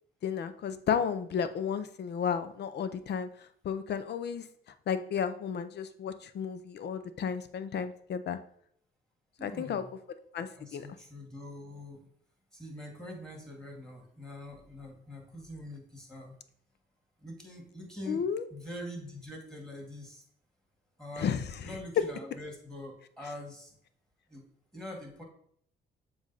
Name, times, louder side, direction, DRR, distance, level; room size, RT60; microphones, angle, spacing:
voice 1, 0.2-4.4 4.9-8.4 9.4-9.8 10.3-10.9 18.1-18.4 21.2-21.8, left 7 dB, 60° left, 12 dB, 0.6 m, -33 dB
voice 2, 9.4-9.9 10.6-12.1 12.5-16.4 17.2-18.2 18.5-20.2 21.0-21.3 21.6-23.8 24.3-24.4 24.7-25.2, left 1 dB, 5° left, 0 dB, 2.1 m, -44 dB
7.1 x 2.6 x 5.6 m, 0.65 s
cardioid pair, 90°, 20 cm